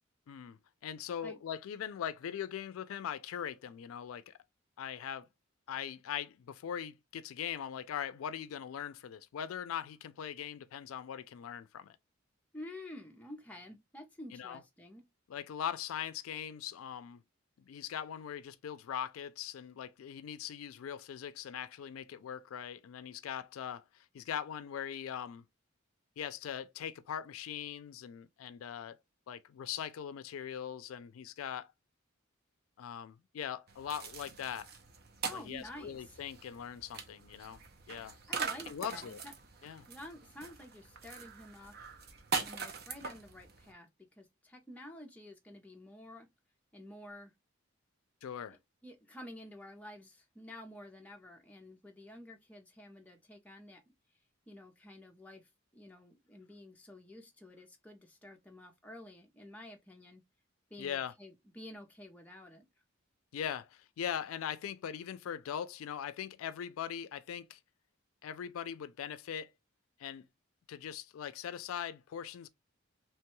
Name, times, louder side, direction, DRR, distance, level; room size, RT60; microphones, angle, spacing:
voice 1, 0.3-4.3 4.8-5.3 5.7-12.0 14.3-14.6 15.3-17.2 17.7-25.4 26.2-29.0 29.3-31.7 32.8-34.7 35.3-37.6 37.9-38.2 38.7-39.2 39.6-39.9 48.2-48.6 60.8-61.1 63.3-67.6 68.2-69.5 70.0-70.3 70.7-72.5, left 9 dB, 90° left, 0.3 m, -41 dB
voice 2, 12.5-15.1 35.3-36.2 38.3-39.3 39.9-41.7 42.3-46.3 46.7-47.3 48.8-53.8 54.5-60.2 60.7-62.7, left 1 dB, 5° left, 0.5 m, -50 dB
sound 1, 33.7-43.7, right 5 dB, 50° right, 0.6 m, -42 dB
3.0 x 2.2 x 2.9 m
head